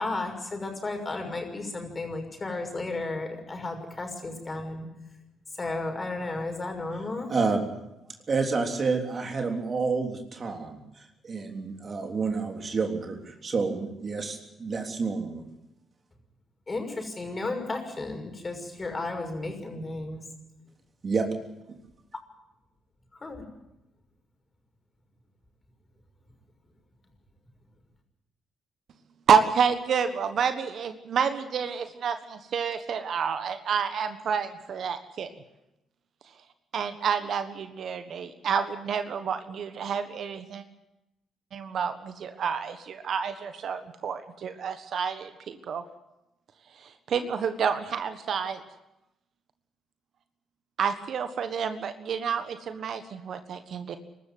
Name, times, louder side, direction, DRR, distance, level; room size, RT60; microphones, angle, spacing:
voice 1, 0.0-4.9 5.6-7.3 16.7-20.2 23.2-23.5, left 2 dB, 30° left, 4 dB, 6.1 m, -33 dB
voice 2, 7.3-7.7 8.3-15.4 21.0-21.3 21.7-21.8, right 4 dB, 45° right, 4 dB, 3.4 m, -29 dB
voice 3, 29.3-35.3 36.7-40.6 41.5-45.8 46.7-48.6 50.8-54.0, right 7 dB, 60° right, 10 dB, 1.4 m, -29 dB
23.0 x 13.5 x 9.4 m, 0.93 s
hypercardioid pair, 50°, 0 cm